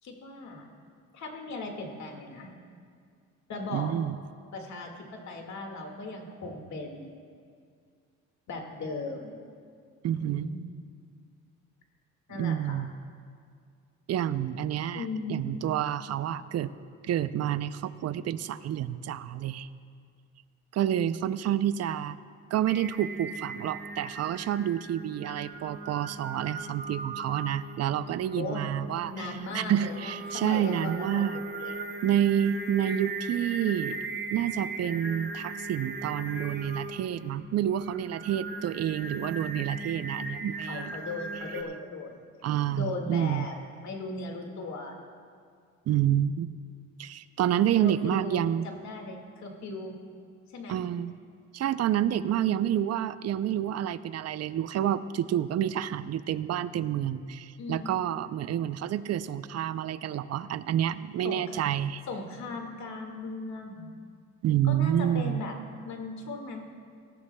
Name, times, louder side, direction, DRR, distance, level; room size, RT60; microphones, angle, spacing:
voice 1, 0.0-0.7 1.1-2.5 3.5-3.9 4.5-7.1 8.5-9.4 10.2-10.7 12.3-12.8 14.9-15.6 28.3-28.7 29.1-31.7 40.6-42.3 42.7-43.6 43.8-45.0 47.8-49.9 50.5-50.8 57.6-58.0 61.2-61.6 62.1-63.9 64.6-65.5 65.8-66.6, left 3 dB, 65° left, 2 dB, 1.9 m, -38 dB
voice 2, 3.7-4.2 10.0-10.5 12.3-12.9 14.1-16.7 17.0-19.7 20.7-22.2 22.5-29.3 29.5-31.4 32.0-34.0 34.3-41.0 42.4-43.5 45.9-46.5 47.0-48.7 50.7-51.2 51.5-62.0 64.4-65.4, right 10 dB, 55° right, 14 dB, 0.5 m, -29 dB
Singing, 22.7-41.6, right 3 dB, 35° right, 1.0 m, -39 dB
18.5 x 14.0 x 2.2 m, 2.2 s
cardioid pair, 90°, 30 cm